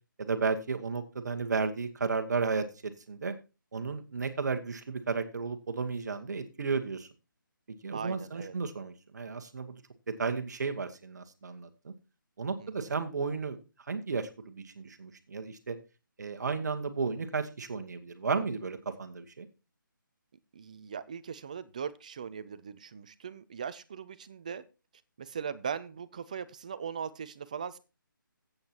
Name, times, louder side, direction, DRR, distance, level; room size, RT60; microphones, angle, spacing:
voice 1, 0.2-3.4 3.7-7.1 7.8-9.7 10.1-11.9 12.4-13.6 13.9-15.8 16.2-19.5, right 4 dB, 55° right, 8 dB, 1.2 m, -33 dB
voice 2, 7.9-8.5 12.6-12.9 20.5-24.6 25.2-27.8, right 7 dB, 20° right, 14 dB, 0.4 m, -39 dB
14.0 x 8.1 x 2.9 m, 0.31 s
hypercardioid pair, 170°, 11 cm